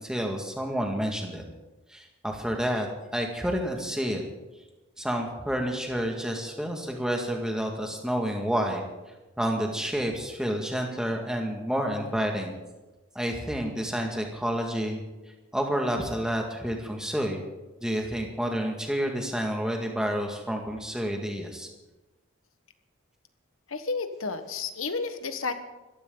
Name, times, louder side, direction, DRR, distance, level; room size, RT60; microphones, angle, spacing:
voice 1, 0.0-1.4 1.9-2.9 3.1-4.2 5.0-8.9 9.4-12.5 13.2-15.0 15.5-17.4 17.8-21.7, equal, 5° right, 1 dB, 2.0 m, -29 dB
voice 2, 23.7-25.5, left 4 dB, 80° left, 9 dB, 1.4 m, -31 dB
24.5 x 14.5 x 4.0 m, 1.1 s
head